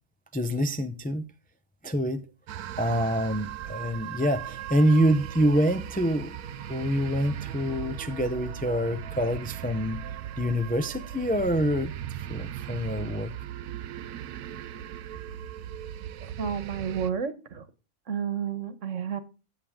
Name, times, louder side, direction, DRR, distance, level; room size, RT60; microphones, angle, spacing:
voice 1, 0.3-1.3 1.8-2.2 2.8-6.3 6.7-10.0 10.4-11.9 12.2-13.3, equal, 10° left, 0.4 m, -26 dB
sound 1, 2.5-17.1, right 10 dB, 80° right, 1.2 m, -38 dB
voice 2, 16.4-17.6 18.1-19.2, right 7 dB, 55° right, 1.5 m, -31 dB
16.5 x 6.9 x 3.6 m
omnidirectional pair, 1.6 m